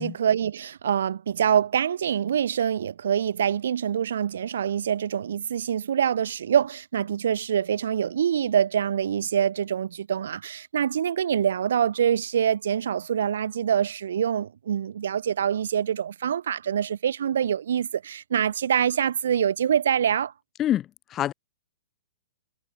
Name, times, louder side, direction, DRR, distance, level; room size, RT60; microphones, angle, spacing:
voice 1, 0.0-20.3, right 9 dB, 70° right, 1.6 m, -25 dB
voice 2, 20.6-21.3, left 12 dB, 25° left, 0.4 m, -26 dB
hypercardioid pair, 115°, 0 cm